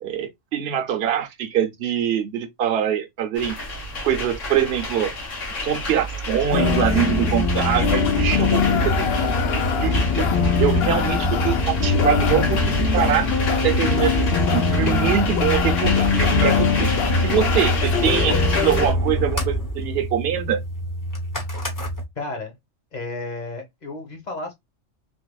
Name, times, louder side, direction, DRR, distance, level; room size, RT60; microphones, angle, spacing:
voice 1, 0.0-3.6 4.0-5.1 5.6-10.3 10.6-13.3 13.6-14.3 14.5-16.9 17.2-20.6, right 9 dB, 60° right, 0.9 m, -24 dB
sound 1, 3.3-18.9, left 1 dB, 85° left, 1.7 m, -30 dB
sound 2, 6.5-18.9, left 7 dB, 60° left, 0.8 m, -23 dB
sound 3, 6.6-22.0, equal, 20° left, 0.8 m, -25 dB
voice 2, 22.1-22.6 22.9-24.5, left 2 dB, 35° left, 1.2 m, -32 dB
3.5 x 2.9 x 2.2 m
omnidirectional pair, 1.3 m